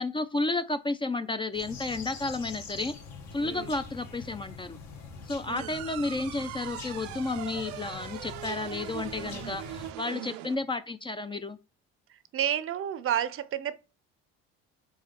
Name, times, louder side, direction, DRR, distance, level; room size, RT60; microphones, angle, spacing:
voice 1, 0.0-3.0 3.3-4.8 5.3-11.6, left 2 dB, 15° left, 0.5 m, -32 dB
sound 1, 1.5-9.9, left 5 dB, 70° left, 1.9 m, -44 dB
voice 2, 3.4-3.7 5.5-5.8 10.0-10.5 12.1-13.8, right 10 dB, 45° right, 0.7 m, -32 dB
sound 2, 5.6-10.6, right 13 dB, 85° right, 0.7 m, -41 dB
4.8 x 4.0 x 5.7 m
supercardioid pair, 95°, 29 cm